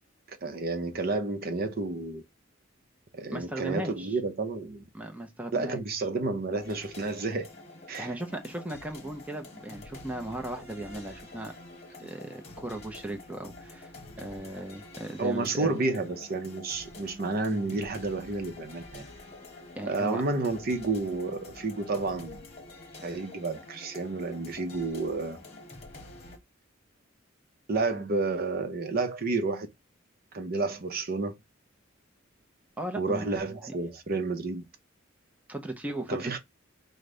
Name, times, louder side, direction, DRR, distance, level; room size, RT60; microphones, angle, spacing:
voice 1, 0.4-2.2 3.1-4.8 5.5-7.5 7.9-8.1 15.2-19.0 19.9-22.4 23.0-25.4 27.7-29.7 30.3-31.4 33.0-34.6 36.1-36.4, right 3 dB, 50° right, 0.7 m, -30 dB
voice 2, 3.3-4.2 4.9-5.8 8.0-11.5 12.0-13.9 14.2-15.8 19.8-20.2 32.8-33.7 35.5-36.4, right 1 dB, 5° right, 0.6 m, -37 dB
sound 1, 6.6-26.4, left 2 dB, 30° left, 1.1 m, -47 dB
5.1 x 2.1 x 3.8 m
head